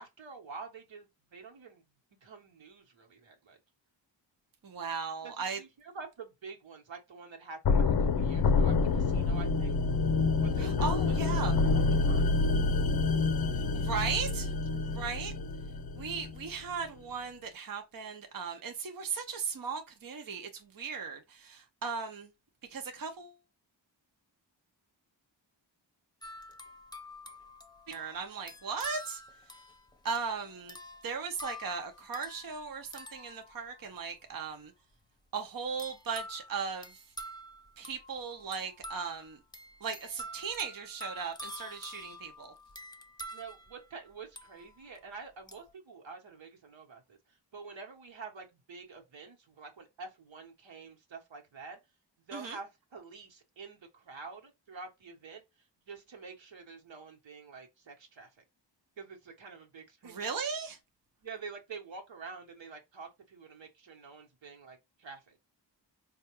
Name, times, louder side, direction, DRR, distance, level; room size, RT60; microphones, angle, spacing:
voice 1, 0.0-1.8 2.2-3.6 5.2-9.8 10.4-12.4 14.7-15.0 43.3-51.8 52.3-55.4 55.9-58.3 59.0-60.2 61.2-65.4, right 4 dB, 80° right, 1.2 m, -48 dB
voice 2, 4.6-5.6 10.6-11.5 13.7-14.5 14.9-15.3 16.0-22.3 22.7-23.3 27.9-29.2 30.0-30.8 31.0-34.7 35.3-36.9 37.8-39.4 39.8-42.5 52.3-52.6 60.0-60.8, right 5 dB, 50° right, 0.7 m, -37 dB
sound 1, 7.6-16.5, left 4 dB, 55° left, 0.5 m, -27 dB
sound 2, 26.2-34.1 35.8-45.0 45.5-45.7, equal, 10° left, 0.7 m, -48 dB
4.3 x 2.3 x 2.9 m
wide cardioid pair, 75°, 44 cm